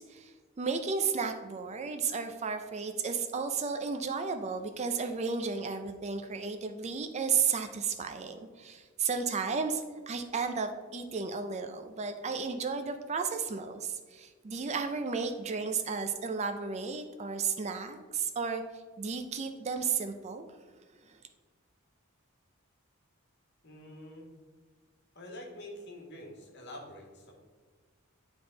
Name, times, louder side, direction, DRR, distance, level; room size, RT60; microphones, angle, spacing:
voice 1, 0.1-18.6 19.0-20.4 21.1-21.2, right 5 dB, 30° right, 7 dB, 0.4 m, -33 dB
voice 2, 23.6-24.3 25.1-27.3, left 1 dB, 50° left, 0 dB, 1.5 m, -46 dB
9.8 x 3.5 x 3.8 m, 1.5 s
head